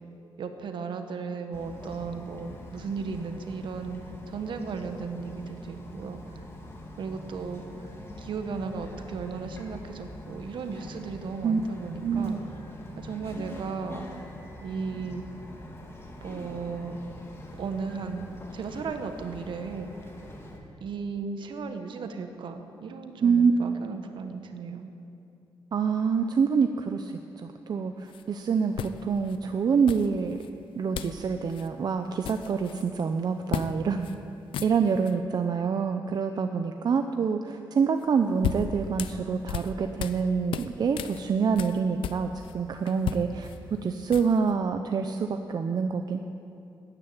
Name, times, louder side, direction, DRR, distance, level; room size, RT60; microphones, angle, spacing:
voice 1, 0.4-4.0 4.3-6.2 7.0-7.9 8.2-12.4 13.0-14.0 14.6-15.2 16.2-17.0 17.6-18.3 18.5-19.9 20.8-24.9, right 5 dB, 70° right, 7 dB, 1.3 m, -35 dB
Bird vocalization bird call bird song, 1.5-20.6, left 1 dB, 30° left, 2.5 m, -44 dB
voice 2, 12.0-12.4 23.2-23.5 25.7-27.1 27.4-30.4 30.8-34.1 34.6-43.5 43.8-46.2, right 6 dB, 50° right, 6 dB, 0.7 m, -26 dB
sound 1, 28.1-28.2 28.8-29.4 29.9-30.5 30.9-31.2 31.5-31.7 32.0-32.9 33.5-33.7 34.0-34.2 34.4-35.1 38.0-40.2 40.5-42.5 42.9-44.5, left 9 dB, 85° left, 0.6 m, -35 dB
12.5 x 10.0 x 8.9 m, 2.7 s
cardioid pair, 80°, 9 cm